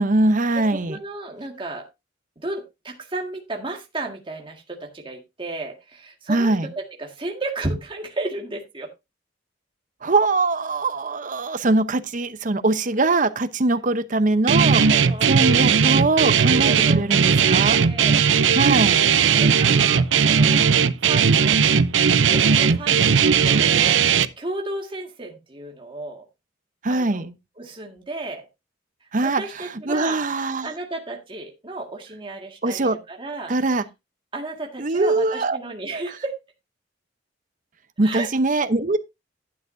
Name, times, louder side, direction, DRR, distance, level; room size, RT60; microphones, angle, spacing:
voice 1, 0.0-1.0 6.3-6.7 10.0-14.8 15.3-17.8 18.5-19.0 26.8-27.3 29.1-30.7 32.6-33.0 33.5-33.8 34.8-35.6 35.9-36.0 38.0-39.0, right 2 dB, 45° right, 0.8 m, -22 dB
voice 2, 0.5-1.8 2.4-8.9 14.7-15.3 16.4-18.8 19.4-20.7 21.0-21.6 22.3-26.3 26.9-27.3 27.6-28.5 29.2-30.2 30.6-33.5 34.3-36.4 38.0-38.3, right 2 dB, 30° right, 1.9 m, -33 dB
Guitar, 14.5-24.2, right 6 dB, 90° right, 0.6 m, -17 dB
11.5 x 9.3 x 2.6 m
head